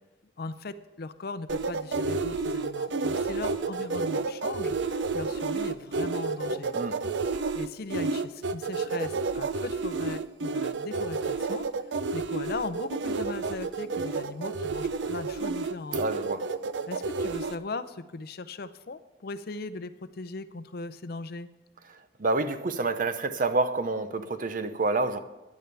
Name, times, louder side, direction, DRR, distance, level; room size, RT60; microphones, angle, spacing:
voice 1, 0.4-6.7 7.5-16.0 16.9-21.5, left 3 dB, 60° left, 0.6 m, -38 dB
sound 1, 1.5-17.6, right 4 dB, 90° right, 0.5 m, -30 dB
voice 2, 16.0-16.4 22.2-25.2, right 3 dB, 50° right, 0.7 m, -28 dB
15.5 x 10.5 x 3.4 m
head